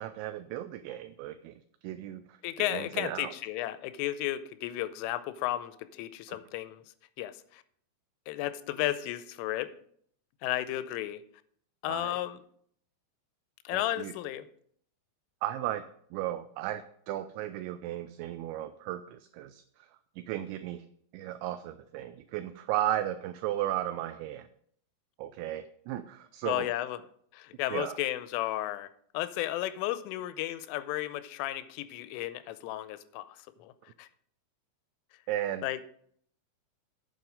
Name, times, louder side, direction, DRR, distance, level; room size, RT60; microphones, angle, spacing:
voice 1, 0.0-3.3 6.3-6.4 11.9-12.2 13.7-14.1 15.4-15.8 16.1-19.6 20.2-20.9 21.1-24.5 25.2-26.7 27.7-28.0 35.3-35.6, right 13 dB, 85° right, 10 dB, 2.6 m, -35 dB
voice 2, 2.4-6.8 7.2-7.6 8.3-9.7 10.4-11.2 11.8-12.4 13.6-14.5 26.4-27.0 27.3-33.7 34.0-34.1 35.6-35.8, left 14 dB, 90° left, 13 dB, 3.2 m, -33 dB
9.2 x 7.4 x 5.0 m, 0.63 s
omnidirectional pair, 5.7 m